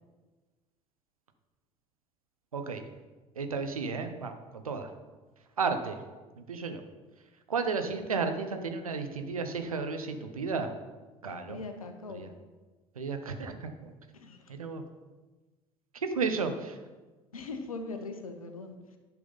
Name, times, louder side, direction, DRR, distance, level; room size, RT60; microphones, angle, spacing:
voice 1, 2.5-2.8 3.4-4.9 5.6-6.0 6.4-6.8 7.5-10.7 11.2-11.6 12.1-12.3 13.0-13.9 14.6-14.8 16.0-16.8, right 4 dB, 80° right, 7 dB, 0.9 m, -33 dB
voice 2, 11.2-12.2 14.1-14.5 17.3-19.0, left 3 dB, 80° left, 7 dB, 1.0 m, -41 dB
10.5 x 6.1 x 5.5 m, 1.3 s
figure-of-eight pair, 60°, 18 cm